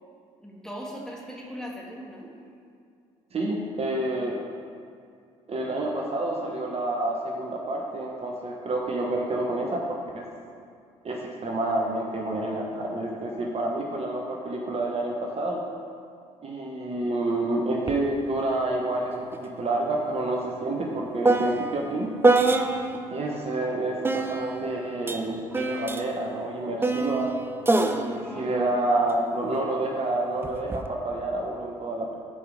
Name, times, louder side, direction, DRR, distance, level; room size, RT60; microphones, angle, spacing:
voice 1, 0.4-2.3 27.9-28.6, equal, 5° left, -3 dB, 2.3 m, -40 dB
voice 2, 3.3-4.3 5.5-10.3 11.0-15.6 16.4-22.1 23.1-27.3 27.9-32.1, right 2 dB, 40° right, -1 dB, 1.1 m, -28 dB
sound 1, 17.9-18.0 18.4-23.1 24.0-29.6 30.4-30.9, right 2 dB, 15° right, 0.7 m, -26 dB
12.0 x 5.0 x 4.9 m, 2.3 s
hypercardioid pair, 55°, 16 cm